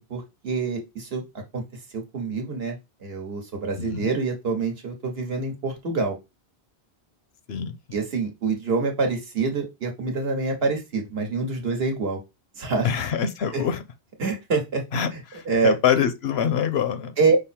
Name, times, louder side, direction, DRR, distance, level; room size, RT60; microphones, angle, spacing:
voice 1, 0.1-1.2 1.5-1.6 1.9-2.8 3.0-6.2 7.9-12.2 12.6-12.9 13.5-13.6 14.2-14.8 15.5-15.8 17.2-17.4, right 4 dB, 70° right, 1.4 m, -26 dB
voice 2, 3.8-4.1 7.5-7.7 12.8-13.8 14.9-17.1, left 8 dB, 70° left, 0.9 m, -25 dB
5.5 x 2.0 x 4.2 m
omnidirectional pair, 1.1 m